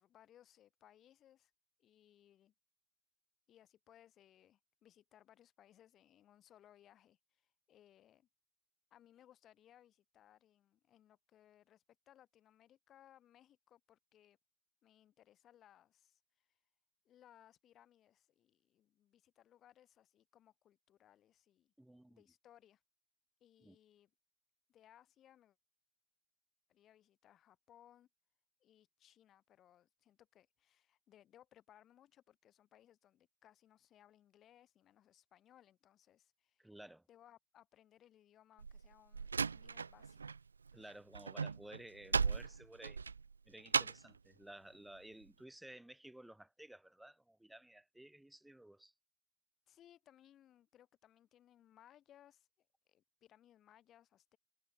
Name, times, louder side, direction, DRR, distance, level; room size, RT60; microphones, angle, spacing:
voice 1, 0.0-1.5 1.8-2.5 3.5-8.3 8.9-14.4 14.8-16.6 17.0-21.7 22.1-22.8 23.4-24.1 24.7-25.6 26.7-28.1 28.6-36.7 37.1-40.4 49.7-54.4, left 11 dB, 30° left, 7.5 m, -66 dB
voice 2, 21.8-22.2 23.6-23.8 36.6-37.0 40.7-43.0 43.5-48.9, right 1 dB, 5° right, 1.1 m, -55 dB
Slam, 38.6-40.4 40.7-44.2, right 5 dB, 75° right, 0.3 m, -37 dB
figure-of-eight pair, 90°, 0 cm